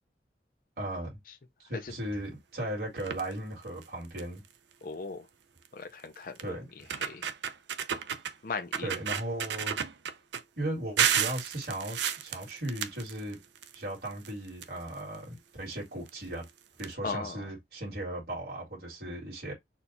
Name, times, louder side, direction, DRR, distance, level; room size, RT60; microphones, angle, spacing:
voice 1, 0.8-1.2 1.7-4.4 6.4-6.7 8.8-9.8 10.6-13.4 13.7-16.5 16.8-19.5, right 1 dB, 60° right, 2.1 m, -37 dB
sound 1, 3.0-3.3 3.8-3.9 4.2-4.5 5.6-5.7 6.4-6.5 6.8-8.3 8.7-10.4 11.0-13.7 14.0-15.2 16.1-16.2 16.4-16.5 16.8-16.9, right 8 dB, 85° right, 0.5 m, -32 dB
voice 2, 4.8-5.2 5.7-6.6 7.0-7.2 8.4-8.9 17.0-17.4, left 4 dB, 50° left, 0.5 m, -37 dB
4.3 x 2.3 x 4.0 m
head